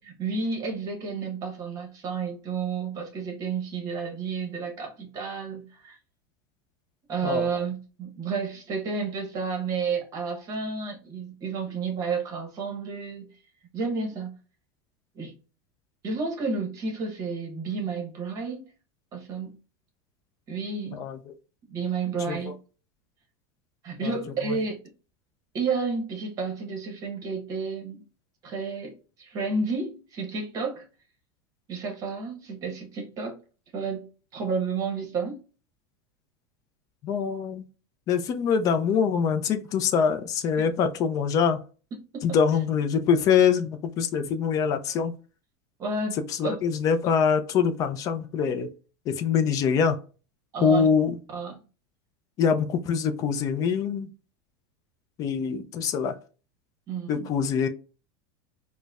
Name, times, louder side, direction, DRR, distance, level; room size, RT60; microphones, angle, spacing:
voice 1, 0.2-6.0 7.1-13.3 13.7-14.3 15.2-15.3 16.0-18.6 19.1-19.5 20.5-21.0 21.7-22.5 23.8-24.8 25.5-28.0 28.4-30.8 31.7-33.4 33.7-35.4 40.6-40.7 42.1-42.4 45.8-46.2 46.4-46.6 50.5-50.9 51.3-51.6 56.9-57.3, right 4 dB, 25° right, 0.9 m, -31 dB
voice 2, 37.0-37.6 38.1-41.6 42.2-45.1 46.4-48.7 49.1-50.0 50.6-51.1 52.4-54.1 55.2-56.1 57.1-57.7, left 6 dB, 25° left, 0.4 m, -24 dB
4.3 x 2.1 x 2.4 m
supercardioid pair, 160°, 13 cm